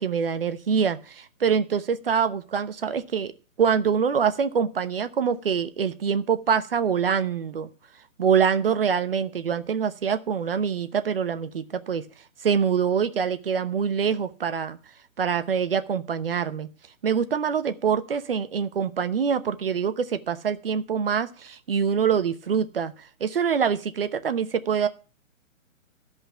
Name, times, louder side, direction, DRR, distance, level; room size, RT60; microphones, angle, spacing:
voice 1, 0.0-3.3 3.6-7.7 8.2-12.0 12.4-14.8 15.2-16.7 17.0-22.9 23.2-24.9, right 7 dB, 45° right, 11 dB, 0.9 m, -25 dB
12.0 x 5.5 x 6.8 m, 0.38 s
hypercardioid pair, 175°, 40 cm